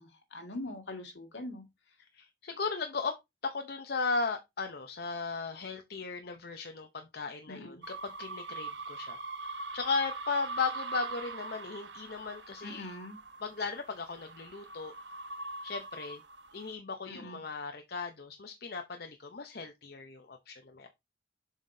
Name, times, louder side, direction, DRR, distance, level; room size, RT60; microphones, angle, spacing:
voice 1, 0.0-1.6 7.5-7.8 12.6-13.2 17.1-17.4, left 1 dB, 75° left, 2.1 m, -42 dB
voice 2, 2.1-3.2 3.4-12.9 13.4-14.9 15.6-16.2 16.5-20.9, left 4 dB, 55° left, 0.8 m, -36 dB
sound 1, 7.8-16.7, right 3 dB, 75° right, 0.9 m, -42 dB
7.3 x 5.8 x 2.7 m
head